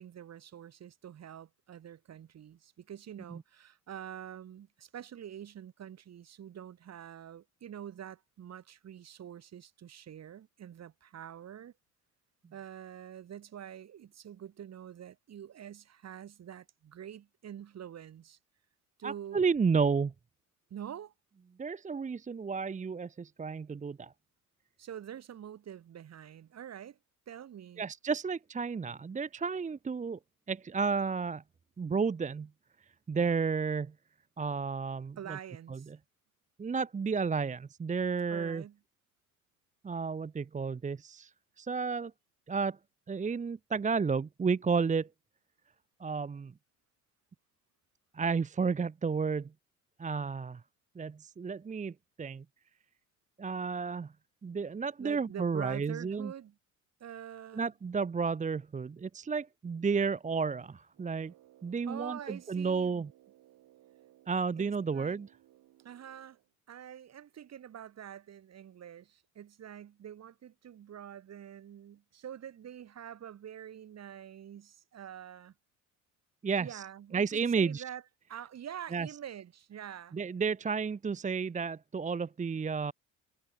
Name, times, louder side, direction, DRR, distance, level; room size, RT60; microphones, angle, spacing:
voice 1, 0.0-11.7 12.5-18.4 19.0-19.4 20.7-21.1 24.8-27.0 27.3-27.9 35.2-35.9 38.3-38.8 55.0-56.6 57.0-57.7 61.9-63.0 64.3-65.2 65.8-66.4 66.7-75.5 76.6-78.0 78.3-80.2, right 9 dB, 45° right, 2.4 m, -46 dB
voice 2, 19.0-20.1 21.6-24.1 27.8-30.2 30.5-31.4 31.8-32.5 33.1-33.9 34.4-35.4 35.7-36.0 36.6-38.6 39.8-41.3 41.6-42.1 42.5-42.8 43.1-45.1 46.0-46.5 48.1-49.5 50.0-50.6 51.0-52.4 53.4-54.1 54.4-56.3 57.5-61.3 61.6-63.1 64.3-65.3 76.4-76.8 77.1-77.8 78.9-79.1 80.1-82.9, right 5 dB, 20° right, 0.9 m, -32 dB
Brass instrument, 60.9-66.5, right 14 dB, 60° right, 5.2 m, -62 dB
hypercardioid pair, 70°, 37 cm